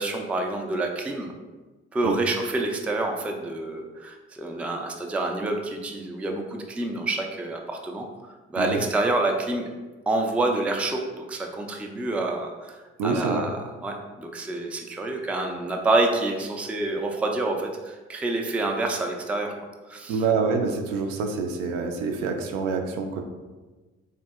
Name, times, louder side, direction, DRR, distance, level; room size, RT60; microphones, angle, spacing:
voice 1, 0.0-1.3 1.9-9.7 10.1-19.5 19.9-20.2, right 2 dB, 5° right, 2 dB, 0.3 m, -28 dB
voice 2, 13.0-13.4 20.1-23.2, right 4 dB, 70° right, 4 dB, 0.5 m, -26 dB
3.7 x 2.6 x 2.2 m, 1.3 s
hypercardioid pair, 45°, 34 cm